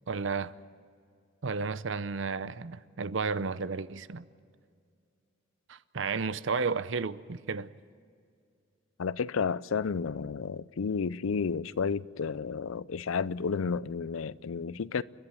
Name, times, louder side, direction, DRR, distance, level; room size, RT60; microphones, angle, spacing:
voice 1, 0.1-0.5 1.4-4.3 5.7-7.7, right 4 dB, 70° right, 0.7 m, -32 dB
voice 2, 9.0-15.0, left 5 dB, 85° left, 0.5 m, -31 dB
30.0 x 11.0 x 9.0 m
head